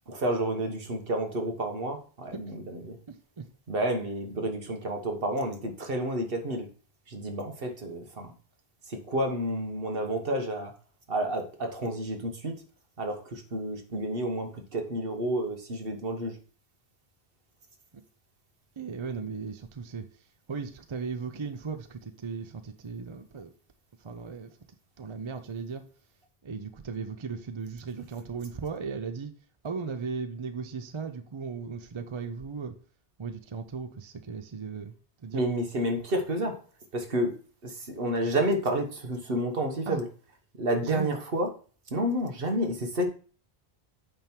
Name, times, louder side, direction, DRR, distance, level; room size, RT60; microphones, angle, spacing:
voice 1, 0.1-3.0 3.7-6.7 7.1-8.3 8.9-10.7 11.1-12.5 13.0-16.4 35.3-36.6 36.9-37.3 37.6-40.1 40.6-41.5 41.9-43.1, right 1 dB, 60° right, 1.4 m, -30 dB
voice 2, 3.1-3.4 17.9-18.0 18.8-20.1 20.5-23.5 24.0-24.5 25.0-25.8 26.4-29.3 29.6-32.7 33.2-34.9 35.2-35.4 39.9-40.0 40.8-41.1, right 5 dB, 35° right, 0.5 m, -36 dB
8.9 x 3.6 x 4.5 m
omnidirectional pair, 1.1 m